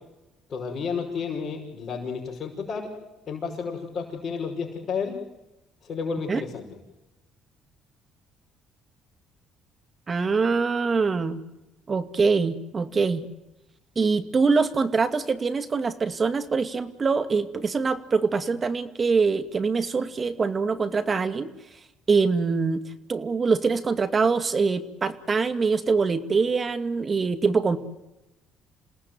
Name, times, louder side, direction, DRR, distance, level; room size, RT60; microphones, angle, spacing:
voice 1, 0.5-2.9 3.3-5.2 5.8-6.6, left 5 dB, 50° left, -3 dB, 5.9 m, -31 dB
voice 2, 10.1-11.4 11.9-13.2 14.0-21.5 22.1-22.8 23.1-27.8, right 4 dB, 35° right, 10 dB, 2.3 m, -24 dB
28.0 x 18.5 x 9.5 m, 0.99 s
supercardioid pair, 70°, 0 cm